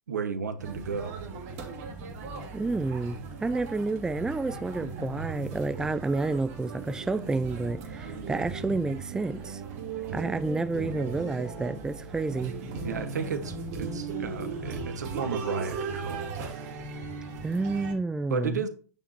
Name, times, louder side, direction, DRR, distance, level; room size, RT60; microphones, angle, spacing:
voice 1, 0.1-1.2 12.8-16.2 18.3-18.7, right 5 dB, 75° right, 1.3 m, -33 dB
sound 1, 0.6-17.9, right 4 dB, 50° right, 2.3 m, -37 dB
voice 2, 2.5-9.6 10.1-12.5 17.4-18.6, right 3 dB, 5° right, 0.4 m, -30 dB
8.9 x 7.0 x 2.8 m
figure-of-eight pair, 95°, 9 cm